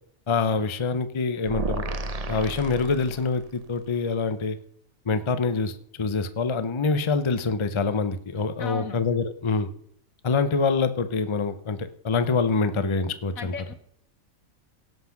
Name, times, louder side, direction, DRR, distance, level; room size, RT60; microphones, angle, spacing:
voice 1, 0.3-1.9 2.3-4.6 5.1-9.7 10.2-13.5, left 4 dB, 30° left, 11 dB, 0.7 m, -25 dB
sound 1, 1.5-3.6, right 2 dB, 35° right, 0.8 m, -32 dB
voice 2, 8.6-9.0 13.4-13.7, left 5 dB, 75° left, 9 dB, 1.8 m, -35 dB
17.5 x 5.9 x 5.9 m, 0.68 s
omnidirectional pair, 1.5 m